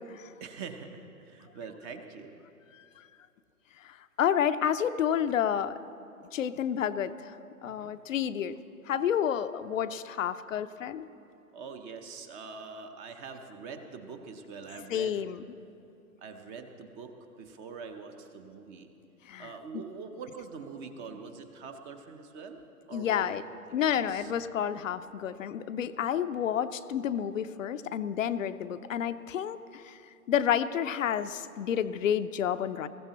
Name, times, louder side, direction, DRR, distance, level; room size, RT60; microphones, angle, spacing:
voice 1, 0.4-2.4 7.6-7.9 11.5-15.2 16.2-18.9 19.4-22.6 22.9-24.4, right 5 dB, 20° right, 7 dB, 0.6 m, -44 dB
voice 2, 3.8-5.7 6.3-7.3 7.6-8.6 8.9-11.1 14.9-15.4 19.3-19.5 22.9-23.4 23.7-30.0 30.3-32.9, left 9 dB, 60° left, 11 dB, 0.6 m, -30 dB
21.0 x 14.5 x 2.9 m, 2.7 s
figure-of-eight pair, 120°, 44 cm